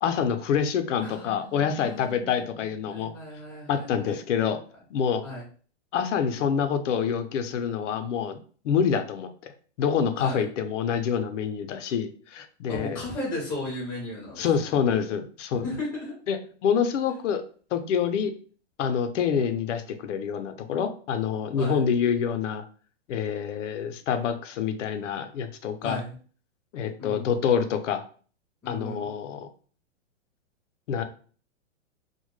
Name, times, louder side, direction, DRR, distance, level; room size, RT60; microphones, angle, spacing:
voice 1, 0.0-3.1 3.7-4.6 4.9-5.2 5.9-8.4 8.6-9.5 9.8-13.1 14.4-15.7 16.3-17.4 17.7-18.3 18.8-22.6 23.1-26.0 26.7-28.0 28.7-29.5 30.9-31.0, left 7 dB, 90° left, 8 dB, 0.5 m, -26 dB
voice 2, 1.0-4.1 5.2-5.4 10.2-10.5 12.7-14.4 15.6-16.1 21.5-21.8 25.8-26.1 27.0-27.3 28.6-29.1, left 1 dB, 5° left, -7 dB, 0.3 m, -36 dB
2.1 x 2.0 x 3.0 m, 0.42 s
hypercardioid pair, 155°, 36 cm